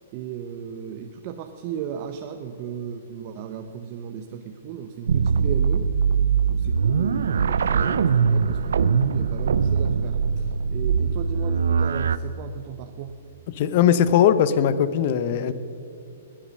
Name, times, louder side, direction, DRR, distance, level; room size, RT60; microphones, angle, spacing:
voice 1, 0.1-5.9 6.5-13.2, right 8 dB, 40° right, 6 dB, 0.8 m, -36 dB
sound 1, 5.1-12.2, right 6 dB, 80° right, 0.6 m, -22 dB
voice 2, 13.5-15.5, left 9 dB, 50° left, 14 dB, 0.8 m, -19 dB
20.0 x 8.5 x 6.5 m, 2.8 s
hypercardioid pair, 140°, 0 cm